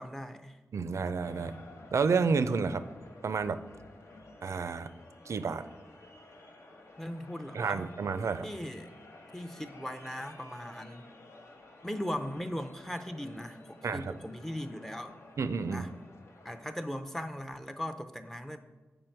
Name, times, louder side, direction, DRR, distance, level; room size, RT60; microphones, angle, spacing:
voice 1, 0.0-0.6 7.0-7.9 8.4-9.0 9.3-11.1 11.8-15.2 15.7-15.9 16.4-18.6, equal, 5° left, 8 dB, 0.5 m, -39 dB
voice 2, 0.7-1.6 1.9-2.8 3.2-3.6 4.4-4.9 5.3-5.6 7.5-8.5 13.8-14.0 15.4-15.8, right 5 dB, 75° right, 12 dB, 0.4 m, -30 dB
sound 1, 1.2-16.8, left 2 dB, 70° left, 0.9 m, -53 dB
7.7 x 5.2 x 4.4 m, 1.2 s
wide cardioid pair, 95°, 5 cm